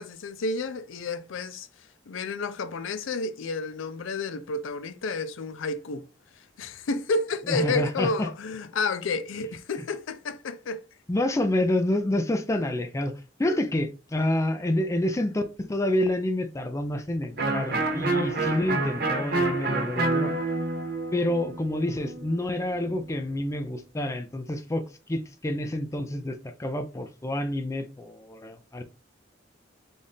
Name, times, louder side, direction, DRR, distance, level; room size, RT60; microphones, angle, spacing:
voice 1, 0.0-6.1 6.4-10.8 13.4-13.6, left 3 dB, 90° left, 0.5 m, -31 dB
voice 2, 7.5-8.3 11.1-20.3 21.1-28.8, left 1 dB, 15° left, 0.4 m, -28 dB
Electric guitar, 17.4-23.0, right 3 dB, 55° right, 0.9 m, -28 dB
4.0 x 2.4 x 3.5 m
head